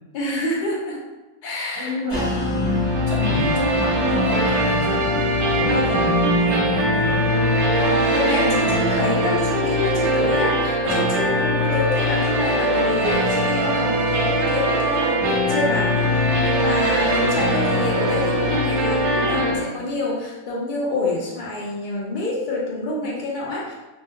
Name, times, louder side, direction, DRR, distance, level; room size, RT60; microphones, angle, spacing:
voice 1, 0.1-1.1 1.4-2.3 5.7-5.9 7.7-23.7, left 2 dB, 65° left, -3 dB, 0.4 m, -27 dB
voice 2, 1.7-5.1 5.5-7.3, left 1 dB, 35° right, -5 dB, 0.5 m, -27 dB
sound 1, 2.1-7.5, equal, 20° left, 0.8 m, -33 dB
sound 2, 2.1-19.6, equal, 65° right, 0.8 m, -21 dB
2.3 x 2.2 x 2.7 m, 1.1 s
omnidirectional pair, 1.5 m